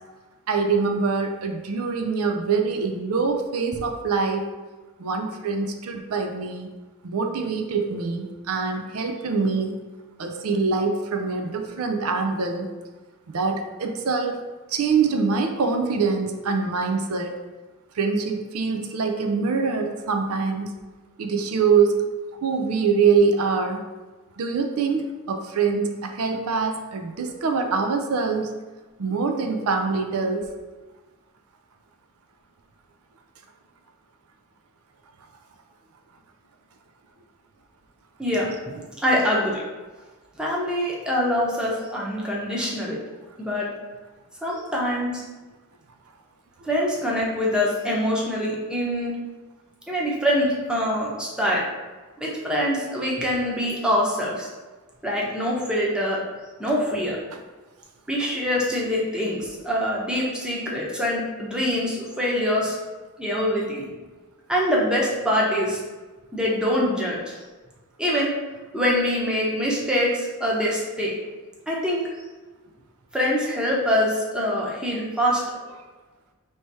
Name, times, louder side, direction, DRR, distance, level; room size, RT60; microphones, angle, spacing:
voice 1, 0.5-4.4 5.0-6.7 7.0-9.7 10.2-12.7 13.3-14.4 14.7-17.4 18.0-20.7 21.2-22.0 22.4-23.8 24.4-28.5 29.0-30.5, right 5 dB, 90° right, 5 dB, 0.5 m, -24 dB
voice 2, 38.2-38.5 39.0-39.6 40.4-43.0 43.4-43.7 44.4-45.2 46.7-49.2 49.9-51.6 52.2-54.5 55.0-56.2 56.6-57.2 58.1-62.8 63.2-63.9 64.5-65.8 66.3-67.3 68.0-68.3 68.7-71.1 71.7-72.0 73.1-75.4, equal, 5° right, -4 dB, 0.8 m, -24 dB
3.1 x 2.9 x 4.6 m, 1.2 s
head